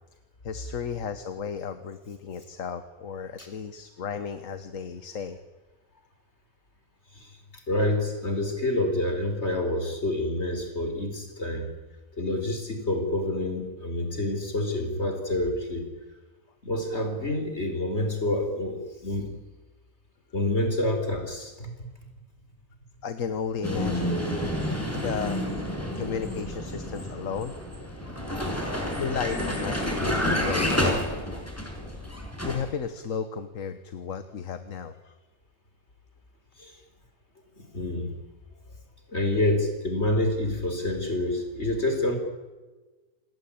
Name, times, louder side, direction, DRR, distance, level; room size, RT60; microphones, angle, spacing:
voice 1, 0.4-5.4 23.0-24.2 24.9-25.5 25.9-27.5 28.9-30.9 32.4-35.2, left 6 dB, 65° left, 10 dB, 1.6 m, -34 dB
voice 2, 7.7-11.7 12.2-15.8 16.6-19.3 20.3-21.9 28.2-28.5 36.6-36.8 37.6-38.1 39.1-42.2, left 1 dB, 50° left, 5 dB, 4.8 m, -28 dB
Vehicle, 23.6-32.7, left 1 dB, 10° left, 5.6 m, -29 dB
27.5 x 19.5 x 8.8 m, 1.3 s
omnidirectional pair, 1.5 m